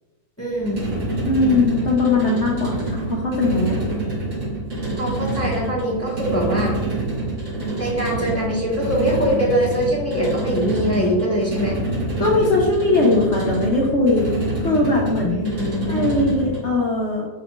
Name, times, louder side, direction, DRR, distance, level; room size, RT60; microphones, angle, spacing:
voice 1, 0.4-0.9 4.9-6.8 7.8-11.8 15.3-16.1, equal, 10° left, -5 dB, 1.4 m, -23 dB
sound 1, 0.6-16.7, right 2 dB, 75° right, 3.0 m, -26 dB
voice 2, 1.2-3.8 12.2-14.3 14.6-15.4 15.9-17.3, left 2 dB, 50° left, -3 dB, 1.1 m, -20 dB
11.0 x 4.2 x 2.5 m, 1.2 s
omnidirectional pair, 1.8 m